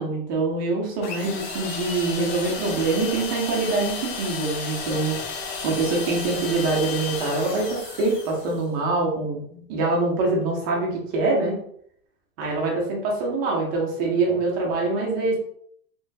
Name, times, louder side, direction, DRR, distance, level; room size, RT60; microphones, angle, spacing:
voice 1, 0.0-5.2 5.6-11.6 12.4-15.4, right 3 dB, 15° right, -1 dB, 0.3 m, -24 dB
sound 1, 1.0-8.6, left 5 dB, 90° left, 1.1 m, -33 dB
4.1 x 3.0 x 2.6 m, 0.64 s
hypercardioid pair, 130°, 47 cm